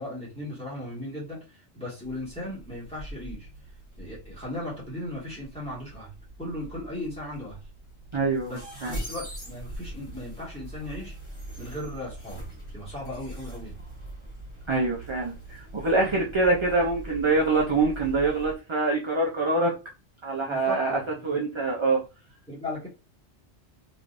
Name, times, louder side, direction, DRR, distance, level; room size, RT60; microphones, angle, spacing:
voice 1, 0.0-3.5 4.0-6.1 6.4-7.6 8.4-11.2 11.6-12.4 12.7-13.8 16.0-16.1 20.4-21.5 22.5-22.9, left 1 dB, 5° left, -8 dB, 1.8 m, -37 dB
sound 1, 2.0-18.5, right 1 dB, 25° left, 1.7 m, -42 dB
voice 2, 8.1-8.5 8.8-9.0 14.7-19.7 20.2-22.0, right 3 dB, 35° right, -2 dB, 0.5 m, -25 dB
3.3 x 3.0 x 2.6 m, 0.31 s
omnidirectional pair, 1.2 m